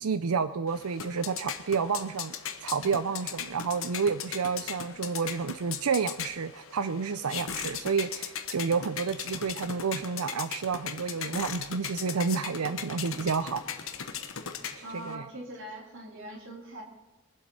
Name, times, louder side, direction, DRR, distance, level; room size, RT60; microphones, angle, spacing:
voice 1, 0.0-13.6 14.7-15.3, right 5 dB, 85° right, 12 dB, 0.5 m, -30 dB
sound 1, 0.7-15.1, left 8 dB, 65° left, 1.2 m, -38 dB
voice 2, 14.8-16.8, right 1 dB, 60° right, 0 dB, 3.5 m, -42 dB
23.0 x 7.9 x 5.5 m, 1.2 s
head